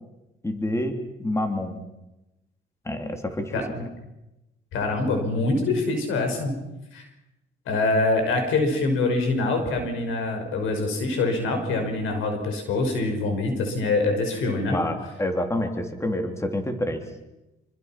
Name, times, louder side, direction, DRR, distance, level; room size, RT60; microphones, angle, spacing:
voice 1, 0.4-1.8 2.8-3.5 14.7-14.9 15.2-17.0, left 1 dB, 15° left, 5 dB, 3.3 m, -27 dB
voice 2, 3.5-3.9 4.7-6.6 6.9-7.0 7.7-14.8, left 2 dB, 85° left, 5 dB, 5.7 m, -25 dB
26.5 x 25.0 x 6.0 m, 0.96 s
cardioid pair, 90°, 20 cm